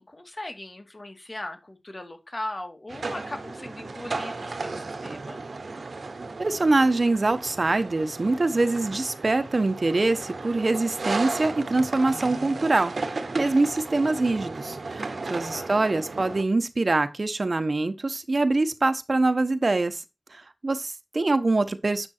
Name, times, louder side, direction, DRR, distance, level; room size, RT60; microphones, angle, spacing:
voice 1, 0.0-5.4 15.1-15.7, left 1 dB, 45° left, 2.3 m, -39 dB
sound 1, 2.9-16.4, right 3 dB, 90° right, 1.2 m, -35 dB
voice 2, 6.4-20.0 20.3-22.1, right 2 dB, 60° right, 1.2 m, -24 dB
8.8 x 6.1 x 4.5 m
wide cardioid pair, 45°, 0 cm